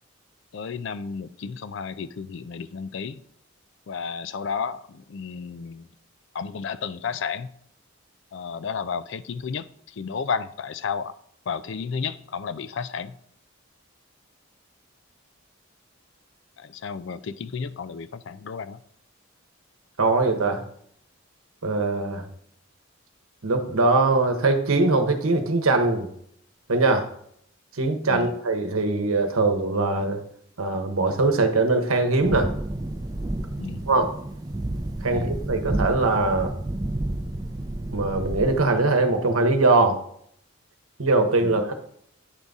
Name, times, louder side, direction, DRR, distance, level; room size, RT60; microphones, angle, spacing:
voice 1, 0.5-3.2 3.9-5.9 6.3-7.5 8.3-11.1 11.5-13.2 16.6-18.8 28.1-28.3 33.6-33.9 35.1-35.3 41.4-41.6, left 6 dB, 60° left, 14 dB, 0.4 m, -32 dB
voice 2, 20.0-20.6 21.6-22.2 23.4-26.1 26.7-27.1 27.7-30.2 30.6-32.5 33.9-34.1 35.0-36.5 37.9-40.0 41.0-41.7, right 3 dB, 85° right, 5 dB, 1.0 m, -21 dB
sound 1, 32.2-38.7, right 1 dB, 20° right, 0.4 m, -30 dB
9.8 x 4.0 x 3.5 m, 0.67 s
head